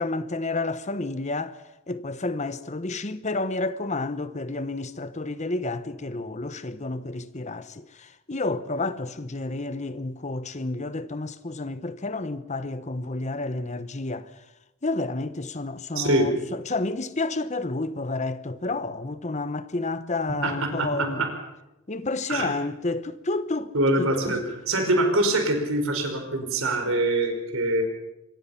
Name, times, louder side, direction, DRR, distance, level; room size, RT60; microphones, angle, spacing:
voice 1, 0.0-1.6 1.9-14.3 14.8-21.2 21.9-23.7 24.0-24.4, left 2 dB, 30° left, 1.0 m, -30 dB
voice 2, 16.0-16.3 20.4-21.3 22.3-22.5 23.7-27.8, right 1 dB, 65° right, 5.2 m, -24 dB
25.5 x 22.0 x 5.8 m
head